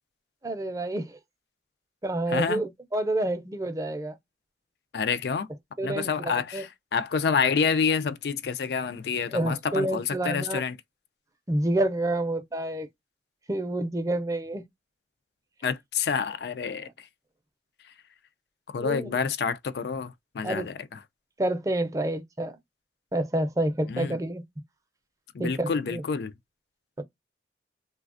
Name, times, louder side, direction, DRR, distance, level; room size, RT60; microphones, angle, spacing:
voice 1, 0.4-1.2 2.0-4.2 5.8-6.6 9.3-10.6 11.5-12.9 13.5-14.6 18.8-19.1 20.4-20.7 21.4-22.5 23.1-24.4 25.4-26.0 27.0-27.1, right 1 dB, 20° right, 0.5 m, -28 dB
voice 2, 2.3-2.6 4.9-5.5 5.8-10.7 15.6-16.9 18.7-21.0 23.9-24.2 25.3-26.3, left 5 dB, 65° left, 0.4 m, -28 dB
3.3 x 2.2 x 2.4 m
head